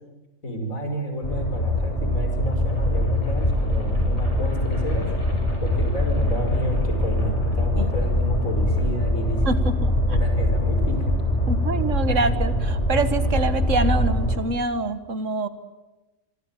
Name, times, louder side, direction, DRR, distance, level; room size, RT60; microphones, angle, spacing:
voice 1, 0.4-5.1 5.6-9.6 10.1-11.1, equal, 80° left, 4 dB, 6.0 m, -31 dB
sound 1, 1.2-14.4, left 1 dB, 30° left, 7.5 m, -23 dB
sound 2, 2.3-10.3, left 1 dB, 55° left, 6.7 m, -38 dB
voice 2, 9.4-10.2 11.5-15.5, right 3 dB, 65° right, 11 dB, 1.8 m, -26 dB
26.0 x 24.5 x 9.1 m, 1.1 s
omnidirectional pair, 1.4 m